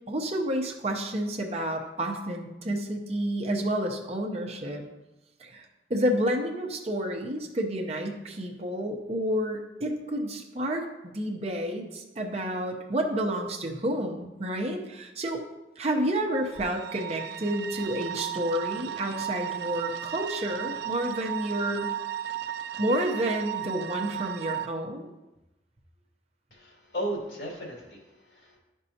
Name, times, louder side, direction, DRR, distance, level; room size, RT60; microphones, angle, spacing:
voice 1, 0.1-4.8 5.4-5.6 5.9-15.4 15.8-21.9 22.8-25.1, right 1 dB, 35° right, 2 dB, 0.8 m, -30 dB
sound 1, 16.5-24.7, right 11 dB, 70° right, 0.3 m, -35 dB
voice 2, 26.5-28.6, right 1 dB, 75° left, -2 dB, 2.2 m, -36 dB
11.0 x 5.4 x 2.8 m, 1.0 s
head